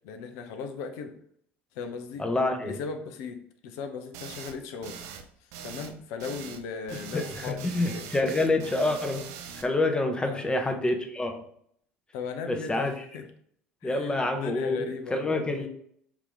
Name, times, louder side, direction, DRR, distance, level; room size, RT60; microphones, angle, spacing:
voice 1, 0.0-1.1 1.7-2.2 2.6-5.0 5.6-8.1 10.2-10.4 12.1-13.2 13.8-15.4, left 5 dB, 60° left, 6 dB, 0.6 m, -37 dB
voice 2, 2.2-2.8 7.1-9.2 9.5-11.4 12.5-12.9 13.8-15.7, left 2 dB, 15° left, 4 dB, 0.8 m, -27 dB
sound 1, 4.1-4.6 4.8-5.2 5.5-5.9 6.2-6.6 6.9-9.6, right 7 dB, 60° right, 0.6 m, -42 dB
4.6 x 2.9 x 3.9 m, 0.67 s
figure-of-eight pair, 65°, 6 cm